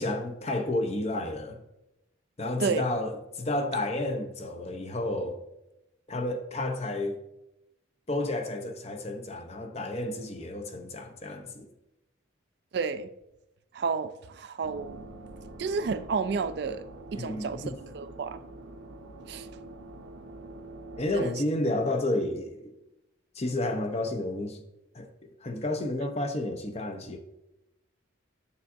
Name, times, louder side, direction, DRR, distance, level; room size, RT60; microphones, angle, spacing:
voice 1, 0.0-1.6 2.4-5.4 6.1-7.2 8.1-11.7 17.1-17.8 21.0-22.6 23.3-24.6 24.9-25.1 25.4-27.2, left 1 dB, 30° left, 0.6 m, -31 dB
voice 2, 12.7-13.1 13.7-15.0 15.6-16.8 17.1-17.6 17.9-18.4 19.3-19.5 21.1-21.3, right 5 dB, 55° right, 0.3 m, -31 dB
sound 1, 14.6-21.2, right 2 dB, 85° right, 1.0 m, -45 dB
8.3 x 6.8 x 2.6 m
head